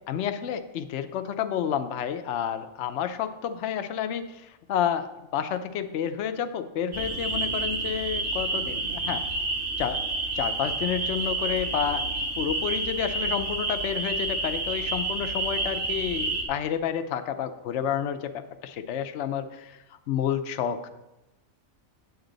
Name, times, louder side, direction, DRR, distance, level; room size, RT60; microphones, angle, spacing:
voice 1, 0.1-9.2 9.8-10.0 10.3-12.1 12.4-19.7 20.1-20.8, left 9 dB, 65° left, 9 dB, 0.9 m, -30 dB
sound 1, 6.9-16.4, right 3 dB, 45° right, 1.6 m, -29 dB
8.8 x 8.1 x 3.9 m, 0.99 s
omnidirectional pair, 1.4 m